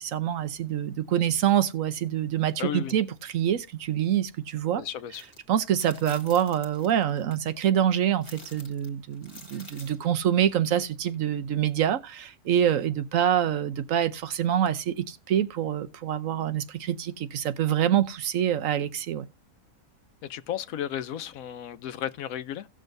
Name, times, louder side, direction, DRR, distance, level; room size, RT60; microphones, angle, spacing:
voice 1, 0.0-4.8 5.5-19.2, right 10 dB, 75° right, 1.1 m, -26 dB
voice 2, 2.6-2.9 4.8-5.2 20.2-22.7, left 10 dB, 85° left, 1.1 m, -34 dB
sound 1, 5.1-5.4 5.8-7.4 8.2-10.0, left 1 dB, 20° left, 1.4 m, -48 dB
17.0 x 6.3 x 2.6 m
omnidirectional pair, 1.4 m